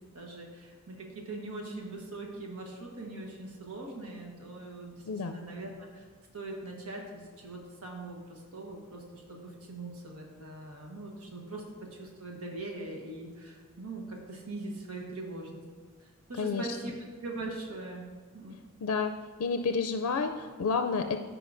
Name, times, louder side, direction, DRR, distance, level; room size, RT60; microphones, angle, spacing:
voice 1, 0.1-6.1 6.3-11.6 11.9-15.6 16.0-16.9 17.2-18.1 18.3-18.6, right 2 dB, 90° right, 0 dB, 1.2 m, -41 dB
voice 2, 16.4-16.7 18.8-19.1 19.4-21.2, left 4 dB, 85° left, 7 dB, 0.4 m, -30 dB
14.5 x 4.8 x 2.6 m, 1.5 s
head